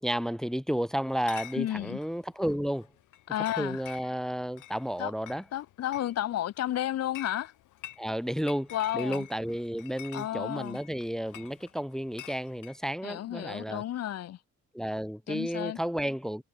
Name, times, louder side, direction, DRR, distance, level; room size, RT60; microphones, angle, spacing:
voice 1, 0.0-2.9 3.6-5.4 8.0-13.8 14.7-16.4, equal, ahead, 0.9 m, -32 dB
Chatter / Chink clink, 1.1-12.8, left 15 dB, 85° left, 6.5 m, -49 dB
voice 2, 1.5-2.0 3.3-3.8 5.0-5.1 5.5-7.5 8.7-9.3 10.1-10.8 13.0-14.4 15.3-15.8, left 12 dB, 55° left, 0.7 m, -32 dB
cardioid pair, 90°, 30 cm